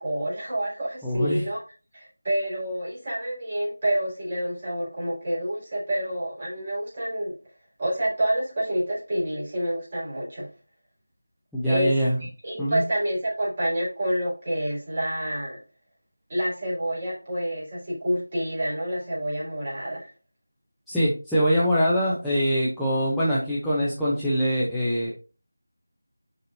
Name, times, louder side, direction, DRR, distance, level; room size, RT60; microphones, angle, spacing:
voice 1, 0.0-1.6 1.9-7.4 7.8-10.5 11.6-11.9 12.4-15.6 16.3-20.1, right 1 dB, 30° right, -5 dB, 4.0 m, -28 dB
voice 2, 1.0-1.5 11.5-12.2 12.6-12.8 20.9-25.1, equal, ahead, -12 dB, 0.7 m, -23 dB
9.9 x 4.2 x 2.7 m, 0.35 s
figure-of-eight pair, 170°, 0 cm